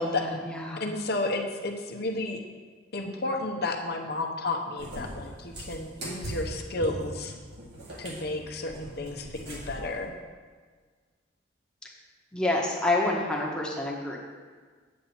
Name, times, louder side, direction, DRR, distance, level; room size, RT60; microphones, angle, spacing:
voice 1, 0.0-0.8 12.3-14.2, left 2 dB, 5° left, -4 dB, 1.3 m, -28 dB
voice 2, 0.8-2.4 2.9-7.3 8.0-10.1, left 2 dB, 55° left, 2 dB, 0.9 m, -32 dB
Cat, 4.8-9.9, right 1 dB, 60° right, 2.0 m, -40 dB
8.5 x 7.3 x 4.3 m, 1.5 s
head